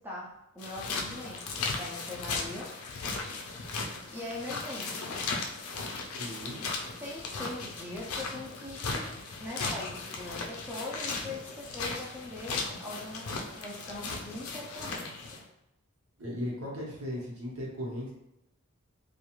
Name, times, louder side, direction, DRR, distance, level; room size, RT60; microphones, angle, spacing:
voice 1, 0.0-2.7 4.1-5.1 7.0-15.4, left 2 dB, 10° right, -5 dB, 0.4 m, -42 dB
sound 1, 0.6-15.4, left 4 dB, 75° left, 0.4 m, -37 dB
voice 2, 6.2-6.6 16.2-18.1, left 1 dB, 70° right, -4 dB, 1.0 m, -37 dB
2.4 x 2.3 x 3.0 m, 0.88 s
head